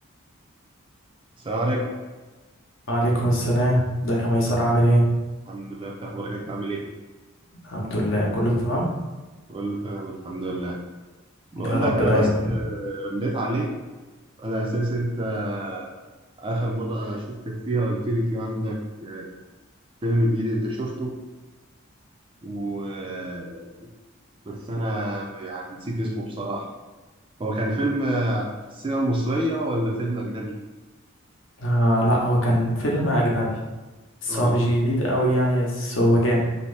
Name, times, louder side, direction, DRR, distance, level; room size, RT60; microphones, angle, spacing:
voice 1, 1.4-1.9 5.5-6.9 9.5-10.8 11.5-13.7 14.4-15.9 16.4-19.3 20.0-21.2 22.4-23.7 24.5-26.7 27.4-30.6 34.2-34.6, right 1 dB, 25° right, -1 dB, 0.3 m, -27 dB
voice 2, 2.9-5.0 7.6-8.9 11.5-12.5 31.6-33.5 34.2-36.4, equal, 60° left, -3 dB, 0.8 m, -21 dB
2.8 x 2.6 x 3.2 m, 1.2 s
head